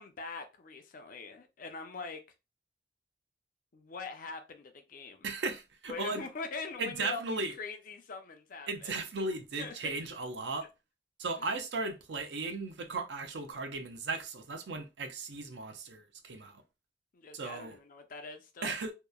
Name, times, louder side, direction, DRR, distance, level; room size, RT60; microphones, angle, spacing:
voice 1, 0.0-2.2 3.7-5.3 5.9-8.9 9.6-9.9 11.4-11.5 17.1-18.7, left 4 dB, 50° left, 0.5 m, -43 dB
voice 2, 5.2-6.2 6.8-7.5 8.7-10.7 11.2-16.6 17.3-17.8 18.6-18.9, right 3 dB, 80° right, 0.5 m, -36 dB
2.9 x 2.1 x 2.3 m
head